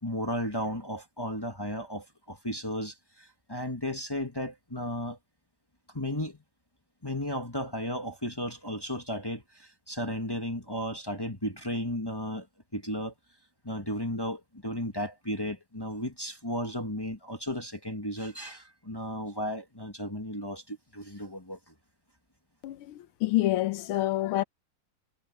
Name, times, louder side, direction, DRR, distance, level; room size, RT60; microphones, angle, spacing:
voice 1, 0.0-5.2 5.9-6.4 7.0-12.5 12.7-13.1 13.6-21.7, equal, 10° left, 1.5 m, -34 dB
voice 2, 22.6-24.4, left 15 dB, 80° left, 1.7 m, -27 dB
omnidirectional pair, 2.4 m